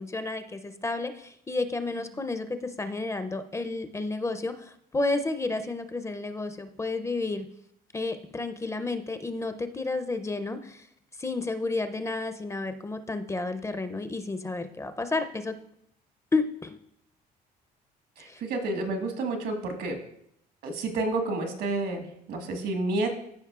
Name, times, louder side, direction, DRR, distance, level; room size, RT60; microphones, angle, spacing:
voice 1, 0.0-7.5 7.9-10.9 11.2-15.6 16.3-16.8 18.2-18.4, left 3 dB, 15° left, 9 dB, 0.5 m, -31 dB
voice 2, 18.2-20.0 20.6-23.1, right 2 dB, 75° right, 4 dB, 1.6 m, -30 dB
14.0 x 5.2 x 2.4 m, 0.72 s
cardioid pair, 110°, 17 cm